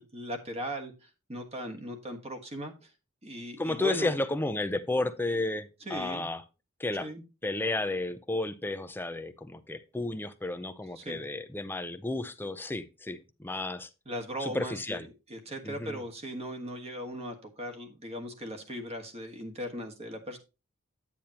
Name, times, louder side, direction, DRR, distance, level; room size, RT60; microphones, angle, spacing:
voice 1, 0.0-2.9 3.2-4.2 5.8-6.3 7.0-7.2 10.9-11.3 14.0-20.4, equal, 30° right, 1.5 m, -38 dB
voice 2, 3.6-6.4 6.8-7.1 7.4-13.9 14.4-15.1 15.6-16.0, left 2 dB, 10° left, 0.6 m, -32 dB
9.1 x 8.6 x 2.9 m
head